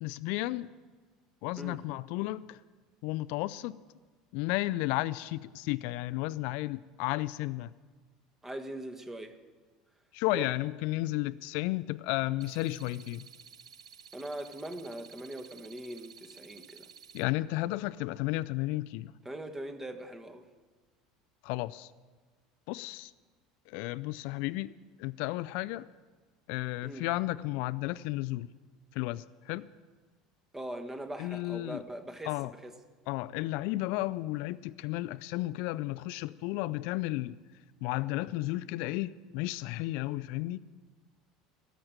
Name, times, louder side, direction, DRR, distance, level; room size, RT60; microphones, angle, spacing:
voice 1, 0.0-0.7 1.4-2.6 3.0-3.8 4.3-7.7 10.1-13.3 17.1-19.1 21.4-21.9 22.7-23.1 23.7-24.7 25.0-25.9 26.5-28.5 28.9-29.7 31.2-31.8 32.3-32.5 33.1-37.4 37.8-40.6, left 18 dB, 60° left, 17 dB, 0.4 m, -33 dB
voice 2, 8.4-9.4 10.3-10.5 14.1-16.9 19.2-20.4 26.8-27.0 30.5-32.3 32.6-32.7, right 1 dB, 15° right, 7 dB, 1.4 m, -41 dB
sound 1, 12.4-17.2, right 7 dB, 85° right, 0.7 m, -53 dB
13.0 x 7.8 x 8.9 m, 1.4 s
hypercardioid pair, 75°, 3 cm